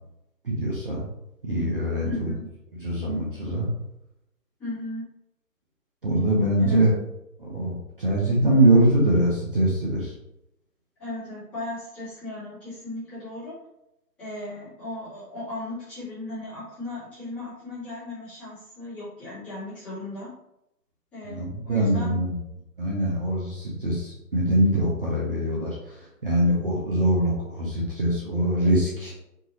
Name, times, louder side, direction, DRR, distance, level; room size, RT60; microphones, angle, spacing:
voice 1, 0.4-1.0 1.4-2.3 2.8-3.7 6.0-6.9 7.4-10.1 21.3-22.4 22.8-25.8 26.2-29.1, right 1 dB, 35° right, -4 dB, 0.8 m, -23 dB
voice 2, 2.0-2.4 4.6-5.0 6.6-6.8 11.0-13.5 14.2-20.3 21.1-22.1, left 2 dB, ahead, -17 dB, 1.2 m, -36 dB
4.5 x 2.6 x 3.1 m, 0.84 s
figure-of-eight pair, 150°, 48 cm